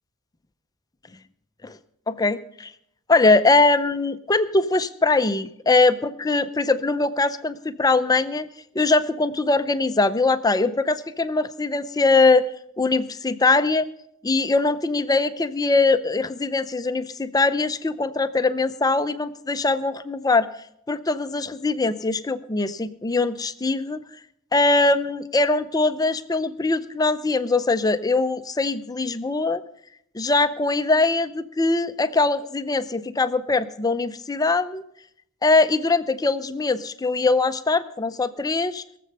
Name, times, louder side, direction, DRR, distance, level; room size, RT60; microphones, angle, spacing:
voice 1, 2.1-2.7 3.1-8.5 8.7-12.5 12.8-13.9 14.2-20.5 20.9-24.0 24.5-29.6 30.1-34.8 35.4-38.8, left 3 dB, 20° left, 12 dB, 0.5 m, -22 dB
21.5 x 7.6 x 5.4 m, 0.73 s
head